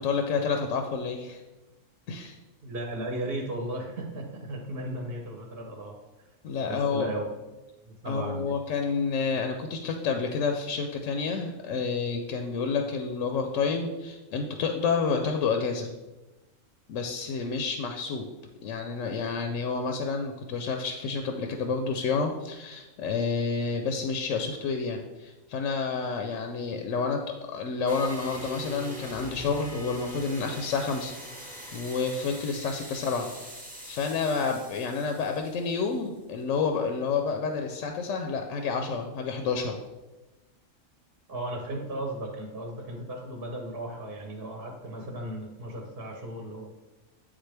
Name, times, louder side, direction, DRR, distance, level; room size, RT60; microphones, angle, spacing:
voice 1, 0.0-1.4 2.1-2.3 6.4-7.1 8.0-15.9 16.9-18.3 18.6-33.3 33.8-39.7, left 5 dB, 75° left, 5 dB, 0.9 m, -29 dB
voice 2, 2.6-6.0 6.7-7.3 7.8-8.6 41.3-46.7, right 1 dB, 50° right, 1 dB, 1.0 m, -36 dB
sound 1, 27.9-36.2, equal, 5° right, 1.0 m, -43 dB
9.0 x 3.6 x 3.3 m, 1.1 s
omnidirectional pair, 1.4 m